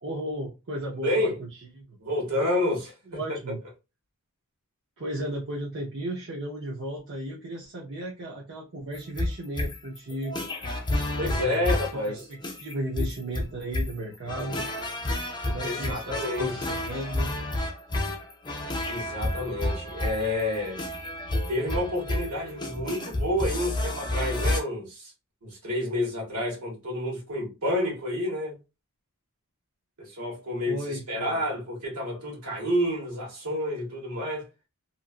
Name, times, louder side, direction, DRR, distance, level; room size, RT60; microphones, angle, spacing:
voice 1, 0.0-1.5 1.7-2.0 3.1-3.6 5.0-10.5 11.3-11.7 12.1-12.2 12.6-14.7 15.4-17.3 30.7-31.4, right 1 dB, 55° right, 0.7 m, -35 dB
voice 2, 1.0-1.4 2.0-3.2 11.2-12.2 15.6-16.6 18.8-20.8 21.5-25.1 25.4-28.6 30.0-34.5, left 1 dB, 75° right, 1.5 m, -29 dB
sound 1, 8.9-24.6, left 1 dB, 20° left, 0.6 m, -30 dB
2.9 x 2.5 x 2.4 m
head